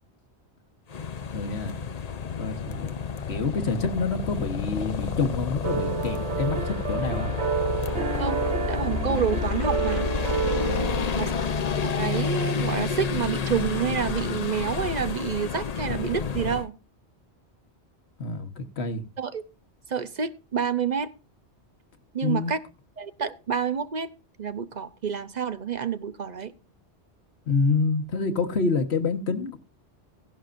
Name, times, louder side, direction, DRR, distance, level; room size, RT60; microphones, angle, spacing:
sound 1, 0.9-16.7, left 6 dB, 40° left, 0.7 m, -29 dB
voice 1, 1.3-1.8 2.4-2.9 3.3-7.4 10.7-11.1 18.2-19.0 22.2-22.5 27.5-29.6, left 4 dB, 70° left, 1.5 m, -27 dB
sound 2, 5.6-11.5, right 7 dB, 75° right, 1.1 m, -30 dB
voice 2, 8.7-10.1 11.1-11.3 11.8-16.8 19.2-19.4 19.9-21.1 22.1-22.6 23.0-24.1 24.4-26.5, right 7 dB, 45° right, 0.7 m, -28 dB
16.0 x 11.0 x 2.5 m
omnidirectional pair, 1.1 m